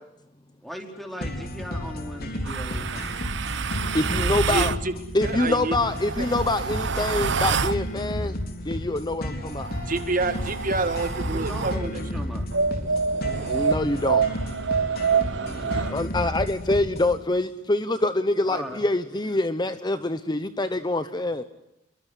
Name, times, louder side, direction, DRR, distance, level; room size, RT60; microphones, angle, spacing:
voice 1, 0.6-3.1 11.3-12.4 15.3-16.1 18.5-18.8, equal, ahead, 3 dB, 4.6 m, -38 dB
sound 1, 1.2-17.2, left 1 dB, 55° left, 3.9 m, -33 dB
sound 2, 2.4-4.8 5.8-7.8 9.5-11.8 12.5-15.9, right 5 dB, 65° right, 0.9 m, -27 dB
voice 2, 3.9-4.7 5.1-8.4 8.6-9.7 13.5-14.2 15.9-21.4, left 2 dB, 25° left, 11 dB, 0.9 m, -25 dB
voice 3, 4.5-4.9 5.2-5.8 6.2-6.3 9.9-12.0, right 3 dB, 45° right, 8 dB, 1.9 m, -28 dB
28.0 x 23.5 x 8.2 m, 0.87 s
head